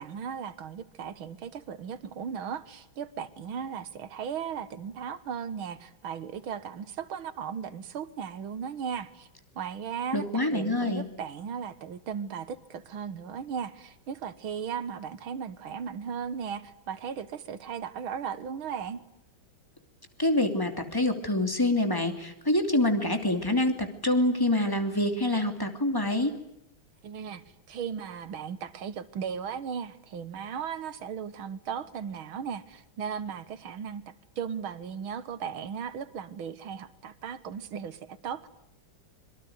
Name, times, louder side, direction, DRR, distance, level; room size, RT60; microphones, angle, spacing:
voice 1, 0.0-9.3 9.6-19.0 27.0-38.5, right 7 dB, 85° right, 13 dB, 2.2 m, -36 dB
voice 2, 10.1-11.1 20.2-26.3, left 1 dB, 10° left, 6 dB, 2.7 m, -26 dB
25.5 x 23.5 x 9.5 m, 0.80 s
omnidirectional pair, 2.2 m